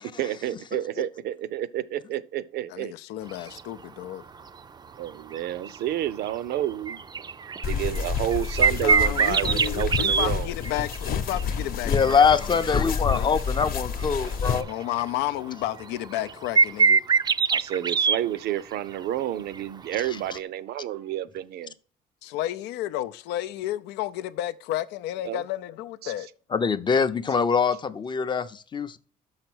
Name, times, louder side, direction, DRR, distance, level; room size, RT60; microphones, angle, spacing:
voice 1, 0.2-2.9 5.0-7.0 7.7-10.5 17.5-21.7 25.2-25.4 26.0-26.1, right 12 dB, 70° right, 0.6 m, -30 dB
voice 2, 2.7-4.2 8.8-13.4 14.6-17.0 22.2-26.3, left 14 dB, 90° left, 0.5 m, -32 dB
sound 1, 3.3-3.6 4.5-4.6 5.1-5.4 5.6-5.8 6.0-6.3 6.7-10.3 10.6-11.5 12.0-13.4 13.8-13.9 14.1-15.3 15.8-15.9 16.1-18.2 19.6-19.7 20.4-20.5, right 5 dB, 25° right, 0.4 m, -23 dB
sound 2, 7.6-14.6, left 6 dB, 60° left, 0.9 m, -29 dB
voice 3, 11.9-14.6 26.5-29.0, left 6 dB, 25° left, 0.5 m, -23 dB
6.6 x 5.7 x 6.1 m
cardioid pair, 110°, 17 cm